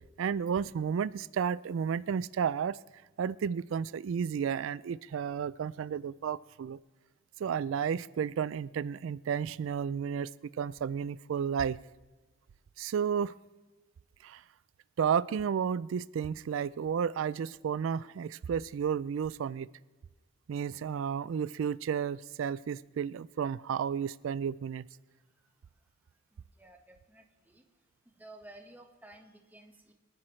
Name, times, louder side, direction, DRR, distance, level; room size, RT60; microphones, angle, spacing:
voice 1, 0.2-2.8 3.2-6.8 7.4-10.3 10.6-11.8 12.8-13.3 14.2-14.4 15.0-19.7 20.5-24.9, right 7 dB, 85° right, 18 dB, 0.3 m, -32 dB
voice 2, 25.1-25.5 26.3-27.6 28.0-29.9, right 1 dB, 10° right, 2 dB, 1.4 m, -54 dB
24.5 x 10.0 x 3.2 m, 1.2 s
head